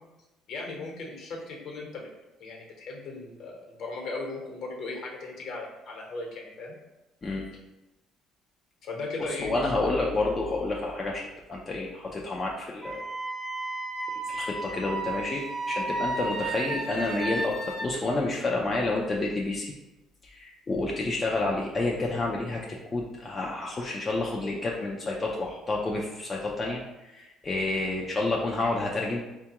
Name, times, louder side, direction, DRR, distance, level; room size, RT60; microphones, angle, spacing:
voice 1, 0.5-2.1 2.4-6.7 8.8-9.7 15.1-15.5, left 3 dB, 60° left, 0 dB, 1.0 m, -37 dB
voice 2, 9.4-13.0 14.3-19.7 20.2-29.2, left 2 dB, 25° left, -3 dB, 0.5 m, -29 dB
Wind instrument woodwind instrument, 12.8-17.9, right 2 dB, 35° right, 0.6 m, -33 dB
4.4 x 2.3 x 2.9 m, 1.0 s
cardioid pair, 105°, 0 cm